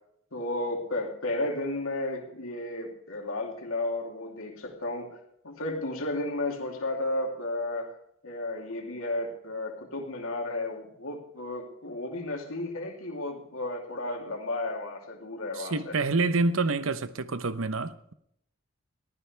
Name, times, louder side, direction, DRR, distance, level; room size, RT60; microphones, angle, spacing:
voice 1, 0.3-5.1 5.4-7.9 8.2-15.9, left 2 dB, 80° left, 3.1 m, -33 dB
voice 2, 15.5-18.1, right 3 dB, 75° right, 0.9 m, -27 dB
22.0 x 15.0 x 3.4 m
head